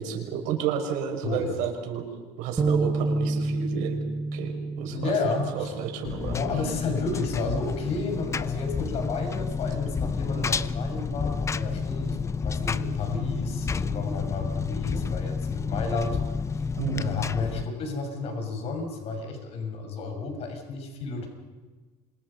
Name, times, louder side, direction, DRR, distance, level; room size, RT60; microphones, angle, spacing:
voice 1, 0.0-2.0 2.4-4.0 4.3-5.1 5.5-6.4 16.8-17.0, right 8 dB, 75° right, 3 dB, 6.0 m, -31 dB
sound 1, 2.6-6.8 7.3-7.5 8.4-8.8, right 3 dB, 20° right, 1.4 m, -30 dB
voice 2, 4.9-5.7 6.3-16.2 16.5-16.6 16.9-21.3, left 4 dB, 50° left, 4 dB, 6.4 m, -31 dB
Engine, 6.0-17.7, left 5 dB, 20° left, 0.7 m, -30 dB
29.0 x 26.0 x 5.6 m, 1.3 s
cardioid pair, 135°, 13 cm